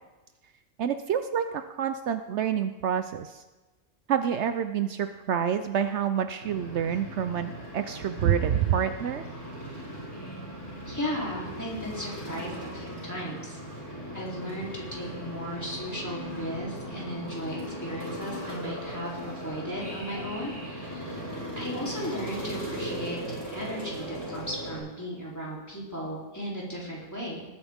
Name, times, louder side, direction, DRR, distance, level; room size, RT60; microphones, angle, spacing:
voice 1, 0.8-3.4 4.1-9.3, right 8 dB, 70° right, 9 dB, 0.9 m, -27 dB
sound 1, 6.4-24.8, equal, 80° left, 6.1 m, -38 dB
voice 2, 10.7-13.6 14.1-21.2 21.5-27.4, equal, 15° left, -5 dB, 3.3 m, -36 dB
19.5 x 9.6 x 3.6 m, 1.1 s
omnidirectional pair, 1.3 m